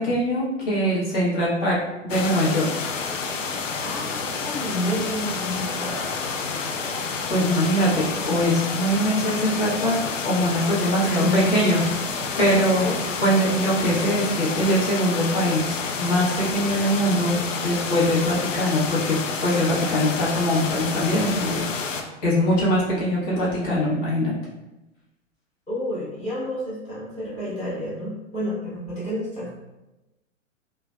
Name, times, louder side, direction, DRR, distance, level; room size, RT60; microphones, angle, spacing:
voice 1, 0.0-1.8 2.0-2.7 5.8-6.7 7.3-10.0 10.2-11.8 12.4-12.9 13.2-19.2 19.4-21.7 22.2-24.3, equal, 35° left, -7 dB, 1.1 m, -22 dB
sound 1, 2.1-22.0, left 5 dB, 75° left, 0.5 m, -29 dB
voice 2, 3.8-5.9 11.0-11.7 12.8-13.0 25.7-29.5, left 1 dB, 15° left, -9 dB, 1.3 m, -29 dB
3.2 x 2.2 x 2.3 m, 0.99 s
figure-of-eight pair, 110°, 38 cm